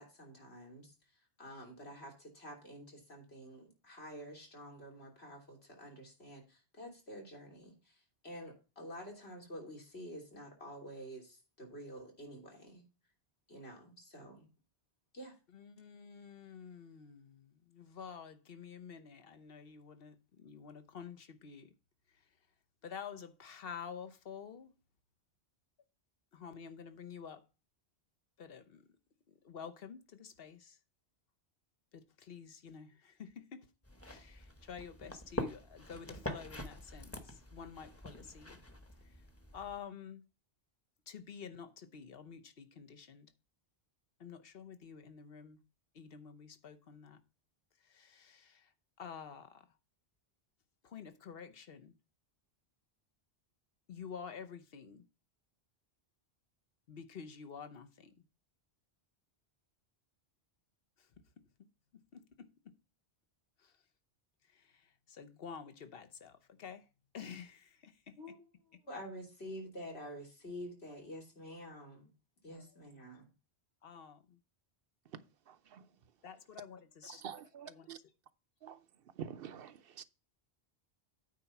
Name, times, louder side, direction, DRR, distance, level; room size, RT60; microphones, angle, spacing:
voice 1, 0.0-12.8 13.5-14.5 15.1-15.3 68.2-72.1 72.4-73.3, equal, 80° left, 3.3 m, -49 dB
voice 2, 15.5-21.7 22.8-24.7 26.3-27.4 28.4-28.8 29.3-30.8 31.9-33.7 34.0-38.6 39.0-39.2 39.5-40.2 41.1-43.3 44.2-45.6 45.9-47.2 47.8-48.7 49.0-49.7 50.8-51.9 53.9-55.0 56.9-58.1 61.0-61.1 61.9-62.7 63.6-63.7 64.5-66.8 67.1-68.1 72.5-72.7 73.8-74.4 76.2-77.2 77.6-77.9, left 7 dB, 65° left, 1.1 m, -49 dB
sound 1, 33.8-39.8, left 1 dB, 15° left, 1.0 m, -45 dB
voice 3, 75.1-75.9 77.1-78.0 78.6-78.8 79.1-80.0, right 8 dB, 65° right, 0.9 m, -47 dB
9.1 x 4.1 x 5.9 m
omnidirectional pair, 1.1 m